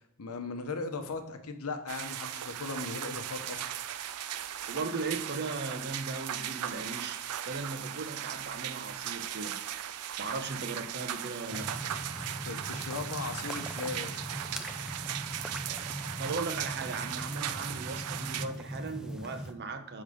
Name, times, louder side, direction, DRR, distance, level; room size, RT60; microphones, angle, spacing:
voice 1, 0.2-3.7 12.1-14.2, left 3 dB, 80° left, 7 dB, 0.8 m, -38 dB
sound 1, 1.9-18.5, right 10 dB, 90° right, 0.4 m, -38 dB
voice 2, 4.7-9.6 10.2-11.7 15.7-15.9 16.2-20.0, right 3 dB, 50° right, 8 dB, 0.7 m, -38 dB
sound 2, 11.5-19.5, equal, 5° right, 0.3 m, -41 dB
6.6 x 3.6 x 5.0 m, 0.80 s
head